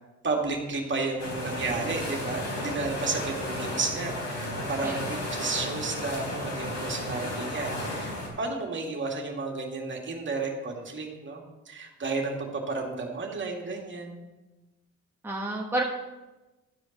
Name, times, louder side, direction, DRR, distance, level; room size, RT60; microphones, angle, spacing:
voice 1, 0.2-14.2, right 3 dB, 40° right, 1 dB, 2.3 m, -32 dB
sound 1, 1.2-8.3, left 1 dB, 65° left, 4.3 m, -33 dB
voice 2, 4.8-5.2 15.2-15.8, right 2 dB, 10° right, -2 dB, 1.4 m, -30 dB
12.0 x 5.1 x 7.3 m, 1.1 s
cardioid pair, 90°, 30 cm